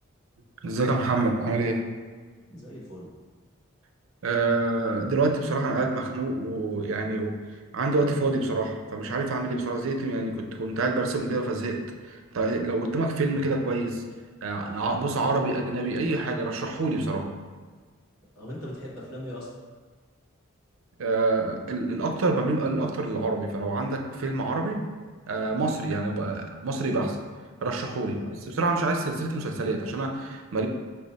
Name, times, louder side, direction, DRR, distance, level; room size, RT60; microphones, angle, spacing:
voice 1, 0.6-1.8 4.2-7.3 7.7-11.8 12.1-14.0 14.4-17.3 21.0-24.8 25.3-27.2 27.6-30.7, right 3 dB, 70° right, 3 dB, 0.5 m, -27 dB
voice 2, 2.5-3.1 18.3-19.5 28.1-28.4, equal, 75° left, -7 dB, 1.4 m, -39 dB
5.5 x 2.1 x 4.0 m, 1.5 s
head